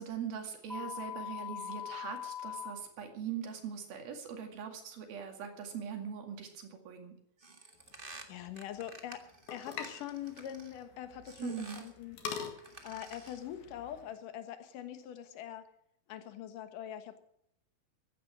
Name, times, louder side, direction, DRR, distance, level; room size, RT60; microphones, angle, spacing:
voice 1, 0.0-7.2 11.4-11.8, right 7 dB, 80° right, 4 dB, 4.1 m, -41 dB
sound 1, 0.7-2.7, left 10 dB, 10° left, 1.5 m, -41 dB
sound 2, 7.4-10.8 11.2-12.0 12.5-13.5, right 3 dB, 55° right, 0.5 m, -52 dB
sound 3, 7.8-14.2, left 6 dB, 85° left, 3.7 m, -46 dB
voice 2, 8.2-12.2 12.8-15.7 16.1-17.2, left 11 dB, 70° left, 8 dB, 2.8 m, -43 dB
15.5 x 12.0 x 6.2 m, 0.71 s
omnidirectional pair, 4.2 m